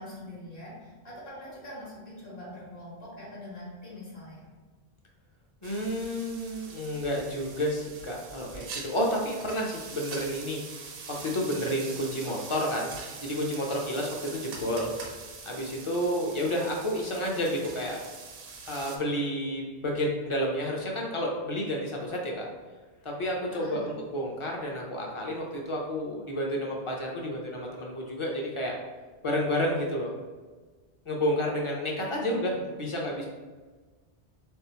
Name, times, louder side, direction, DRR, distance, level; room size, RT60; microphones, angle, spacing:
voice 1, 0.0-4.5 23.5-23.9 32.1-32.5, left 1 dB, 60° left, -7 dB, 1.9 m, -43 dB
voice 2, 5.6-12.9 13.2-14.9 15.4-18.0 18.7-22.5 23.0-28.7 29.2-30.1 31.1-33.3, equal, 35° left, -1 dB, 0.7 m, -30 dB
sound 1, 5.6-19.0, right 4 dB, 75° right, 0.8 m, -43 dB
3.6 x 3.5 x 2.9 m, 1.3 s
omnidirectional pair, 1.1 m